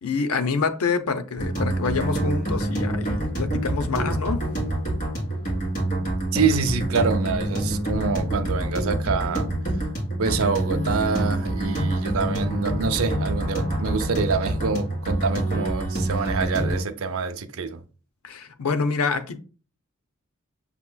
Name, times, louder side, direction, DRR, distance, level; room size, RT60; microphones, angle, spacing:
voice 1, 0.0-4.5 18.2-19.4, left 4 dB, 85° left, 0.6 m, -26 dB
sound 1, 1.4-16.8, right 1 dB, 40° left, 2.0 m, -26 dB
voice 2, 6.3-9.5 10.2-17.8, right 5 dB, 70° right, 0.5 m, -26 dB
6.8 x 2.9 x 2.2 m
head